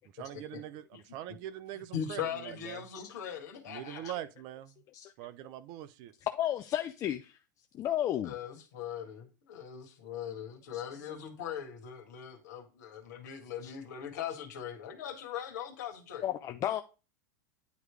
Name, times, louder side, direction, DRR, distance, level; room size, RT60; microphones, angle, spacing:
voice 1, 0.2-2.8 3.7-4.8 5.2-6.1, right 12 dB, 50° right, 0.6 m, -43 dB
voice 2, 1.9-4.1 8.2-16.2, left 9 dB, 65° left, 1.6 m, -40 dB
voice 3, 6.2-7.4 7.7-8.3 10.7-10.8 13.6-13.7 16.2-16.8, left 11 dB, 35° left, 0.5 m, -32 dB
9.4 x 3.2 x 4.7 m
hypercardioid pair, 90°, 10 cm